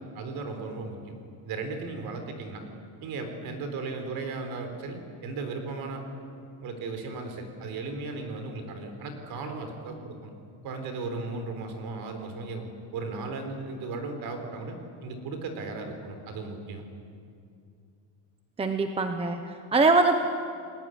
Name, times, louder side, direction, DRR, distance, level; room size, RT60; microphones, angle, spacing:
voice 1, 0.1-1.2 1.4-2.7 3.0-6.0 6.6-10.3 10.6-12.7 12.9-14.8 15.0-16.8, right 3 dB, 45° right, 6 dB, 4.2 m, -36 dB
voice 2, 18.6-20.2, right 3 dB, 10° right, 6 dB, 0.8 m, -23 dB
30.0 x 20.0 x 9.4 m, 2.5 s
cardioid pair, 175°, 49 cm